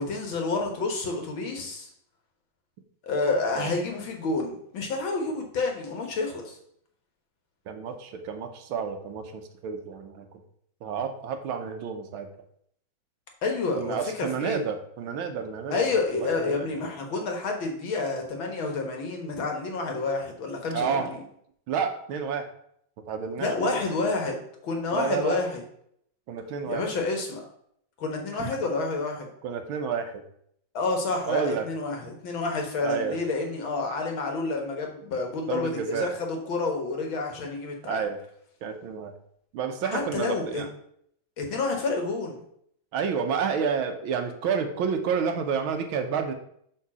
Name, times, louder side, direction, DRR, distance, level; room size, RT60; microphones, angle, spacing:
voice 1, 0.0-1.9 3.0-6.6 13.4-14.6 15.7-21.2 23.4-25.6 26.7-27.5 28.0-29.3 30.7-38.0 39.8-40.6 41.4-42.4, left 3 dB, 80° left, 2 dB, 2.2 m, -29 dB
voice 2, 7.7-10.3 10.8-12.3 13.8-15.9 16.1-16.7 20.7-21.1 21.7-22.5 23.1-23.8 24.9-25.4 26.3-26.9 28.4-28.5 29.4-30.1 31.3-31.7 32.8-33.2 35.5-36.1 37.9-38.2 38.6-39.1 39.5-40.7 42.9-46.3, right 6 dB, 90° right, 7 dB, 1.7 m, -30 dB
7.3 x 3.9 x 6.1 m, 0.70 s
omnidirectional pair, 2.2 m